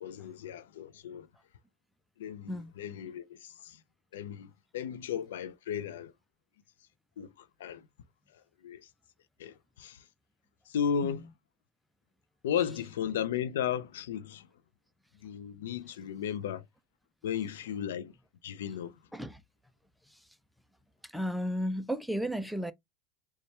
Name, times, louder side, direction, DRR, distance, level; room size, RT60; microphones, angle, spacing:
voice 1, 0.0-1.3 2.2-3.8 4.1-6.1 7.2-7.9 8.6-8.9 9.4-10.0 10.7-11.3 12.4-14.5 15.2-16.6 17.2-18.1 18.4-18.9, left 8 dB, 85° left, 0.5 m, -35 dB
voice 2, 21.1-22.7, equal, ahead, 0.4 m, -33 dB
4.2 x 2.2 x 3.2 m
supercardioid pair, 130°, 0 cm